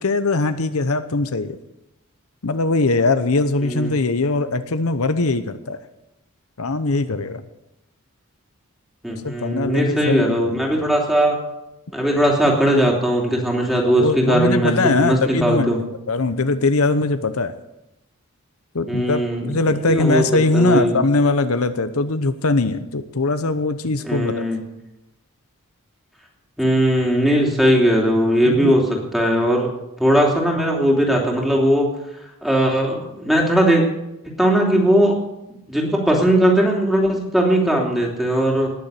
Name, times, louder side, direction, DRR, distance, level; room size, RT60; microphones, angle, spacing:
voice 1, 0.0-1.6 2.4-5.8 6.6-7.4 9.2-10.5 13.9-15.7 16.1-17.5 18.7-24.3 28.4-28.7, left 3 dB, 80° left, 10 dB, 0.9 m, -21 dB
voice 2, 3.6-3.9 9.0-11.4 11.9-15.8 18.9-20.2 20.5-20.9 24.0-24.6 26.6-29.7 30.0-31.9 32.4-33.8 34.4-35.1 35.7-38.7, right 1 dB, ahead, -1 dB, 3.1 m, -19 dB
19.5 x 7.2 x 8.3 m, 0.91 s
head